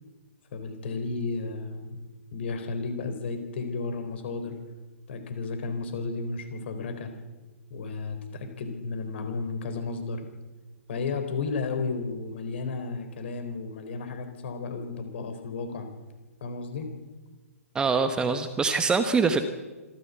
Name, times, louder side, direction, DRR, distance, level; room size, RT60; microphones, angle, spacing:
voice 1, 0.5-2.0 2.3-4.6 5.1-7.1 7.7-10.3 10.9-15.9 16.4-16.9, left 4 dB, 50° left, 8 dB, 3.9 m, -33 dB
voice 2, 17.7-19.4, right 4 dB, 10° right, 9 dB, 1.1 m, -24 dB
26.0 x 14.0 x 8.2 m, 1.2 s
figure-of-eight pair, 120°, 8 cm